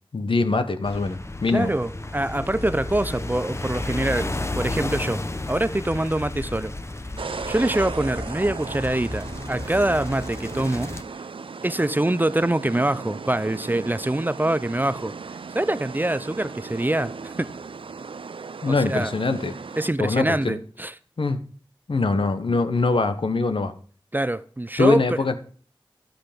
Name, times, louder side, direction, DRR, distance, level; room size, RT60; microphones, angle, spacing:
voice 1, 0.1-1.7 18.6-19.5 20.0-20.6 21.2-21.4 21.9-23.7 24.8-25.4, left 3 dB, 70° left, 1.0 m, -23 dB
sound 1, 0.8-11.0, left 2 dB, 30° left, 1.0 m, -32 dB
voice 2, 1.5-5.2 5.5-6.7 7.5-10.9 11.6-15.1 15.5-17.5 18.7-19.1 19.8-20.9 24.1-25.2, right 1 dB, 20° right, 0.5 m, -24 dB
sound 2, 7.2-19.9, right 5 dB, 75° right, 0.5 m, -37 dB
12.0 x 8.1 x 5.1 m
cardioid pair, 45°, 9 cm